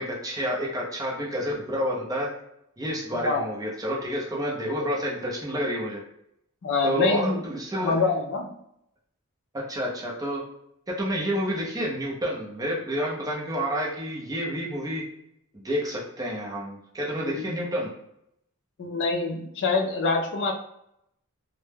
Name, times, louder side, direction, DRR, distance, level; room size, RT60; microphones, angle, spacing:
voice 1, 0.0-2.3 2.8-6.0 6.8-8.0 9.5-10.4 11.0-15.0 15.5-17.9, equal, 15° right, -3 dB, 0.5 m, -29 dB
voice 2, 6.6-7.4 7.8-8.5 17.2-17.5 18.8-20.5, left 3 dB, 55° left, 3 dB, 0.4 m, -25 dB
2.1 x 2.0 x 3.2 m, 0.78 s
head